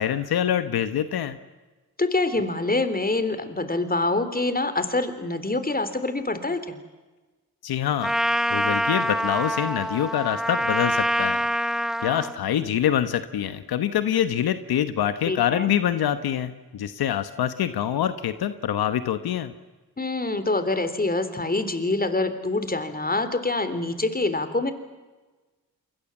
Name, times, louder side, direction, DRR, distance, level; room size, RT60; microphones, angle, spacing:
voice 1, 0.0-1.4 7.6-8.1 8.5-11.5 12.0-19.5, left 10 dB, 80° left, 11 dB, 1.2 m, -25 dB
voice 2, 2.0-6.8 15.3-15.7 20.0-24.7, left 2 dB, 25° left, 11 dB, 3.5 m, -25 dB
Trumpet, 8.0-12.3, equal, ahead, 0.8 m, -25 dB
28.0 x 21.5 x 7.3 m, 1.2 s
cardioid pair, 55°, 37 cm